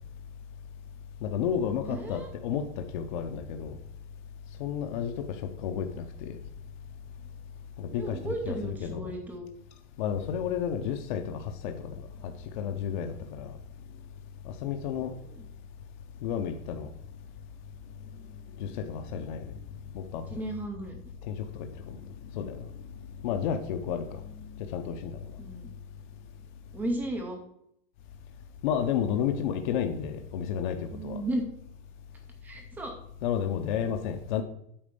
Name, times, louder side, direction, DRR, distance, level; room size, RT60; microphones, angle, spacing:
voice 1, 1.2-3.8 4.6-6.4 7.8-9.1 10.0-13.6 14.4-15.2 16.2-16.9 18.6-19.6 19.9-20.5 21.2-22.7 23.2-25.4 28.6-31.2 33.2-34.4, left 8 dB, 45° left, 0.7 m, -32 dB
voice 2, 1.8-2.3 7.9-9.5 15.2-15.4 20.3-21.0 23.9-24.0 25.4-25.7 26.7-27.4 30.9-31.4 32.4-32.9, right 1 dB, 5° right, 0.4 m, -34 dB
8.7 x 4.3 x 6.8 m
supercardioid pair, 175°, 35 cm